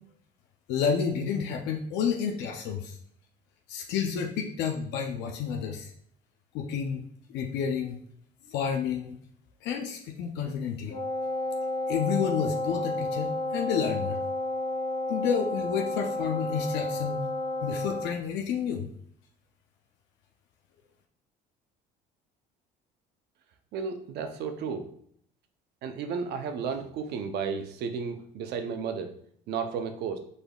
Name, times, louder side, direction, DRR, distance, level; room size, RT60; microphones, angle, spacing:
voice 1, 0.7-3.0 3.7-5.9 6.5-7.0 7.3-8.0 8.4-9.2 9.6-10.9 11.9-14.2 15.1-17.2 17.6-18.9, left 7 dB, 75° left, 3 dB, 0.6 m, -30 dB
Wind instrument woodwind instrument, 10.9-18.2, left 2 dB, 50° left, 1.0 m, -31 dB
voice 2, 23.7-24.9 25.8-29.1 29.5-30.2, right 6 dB, 65° right, 7 dB, 0.7 m, -33 dB
5.0 x 4.0 x 2.4 m, 0.65 s
cardioid pair, 105°, 18 cm